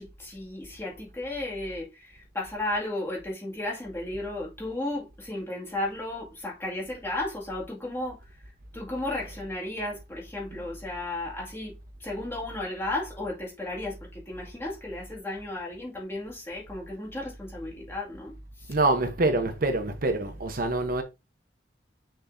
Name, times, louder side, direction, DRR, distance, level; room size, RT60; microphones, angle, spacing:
voice 1, 0.0-8.2 8.7-18.7, left 1 dB, 15° left, 2.1 m, -34 dB
voice 2, 18.7-21.0, right 2 dB, 55° right, 1.0 m, -25 dB
6.5 x 6.2 x 2.7 m
head